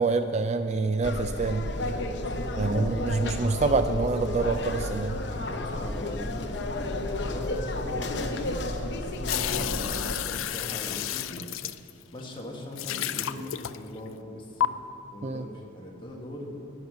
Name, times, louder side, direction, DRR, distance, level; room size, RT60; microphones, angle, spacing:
voice 1, 0.0-1.7 2.6-5.2 9.6-9.7 15.2-15.4, right 3 dB, 35° right, 9 dB, 0.3 m, -26 dB
sound 1, 1.0-10.1, left 2 dB, 60° left, 0.8 m, -32 dB
sound 2, 1.2-9.2, equal, ahead, 2.9 m, -46 dB
voice 2, 2.1-3.4 5.2-8.6 9.2-11.8 12.1-14.7 15.1-16.6, left 1 dB, 25° left, -1 dB, 1.5 m, -40 dB
sound 3, 9.3-12.2 12.7-14.1 14.6-14.7, left 11 dB, 85° left, 0.4 m, -31 dB
11.0 x 9.1 x 6.6 m, 2.8 s
head